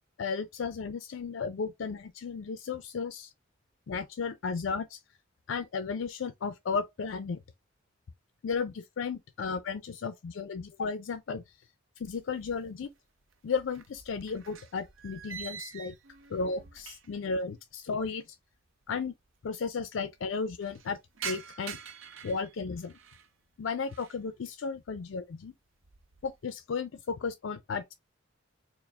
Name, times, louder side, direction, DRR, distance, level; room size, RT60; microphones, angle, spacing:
voice 1, 0.2-3.3 3.9-5.0 5.5-7.4 8.4-11.4 12.0-12.9 13.4-15.9 16.3-18.4 18.9-19.1 19.4-21.0 21.2-21.8 22.2-22.9 23.6-25.5 26.2-27.9, left 5 dB, 65° left, 0.4 m, -34 dB
sound 1, 12.0-12.9 13.2-17.3 17.6-17.7 18.5-18.6 18.8-18.9 19.2-19.7 20.1-23.3 23.7-24.2 24.7-25.1 25.5-26.4, right 7 dB, 75° right, 0.6 m, -46 dB
4.6 x 2.0 x 3.4 m
head